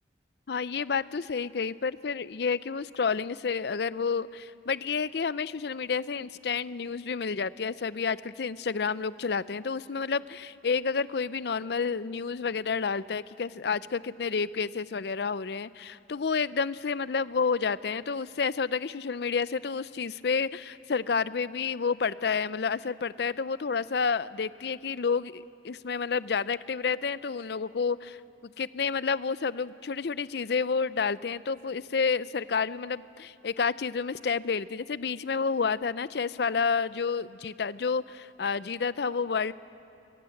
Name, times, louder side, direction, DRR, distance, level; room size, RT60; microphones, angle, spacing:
voice 1, 0.5-39.5, left 5 dB, 60° left, 17 dB, 0.5 m, -30 dB
25.5 x 22.5 x 7.8 m, 2.8 s
head